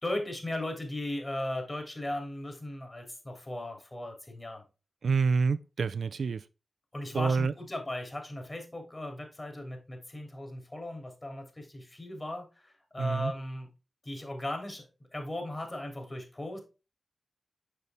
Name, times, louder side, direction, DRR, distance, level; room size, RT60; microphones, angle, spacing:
voice 1, 0.0-4.6 6.9-13.7 14.0-16.6, left 1 dB, 30° left, 3.0 m, -37 dB
voice 2, 5.0-6.4 7.1-7.5 13.0-13.3, right 5 dB, 80° right, 0.4 m, -27 dB
6.7 x 5.3 x 3.5 m
cardioid pair, 40°, 0 cm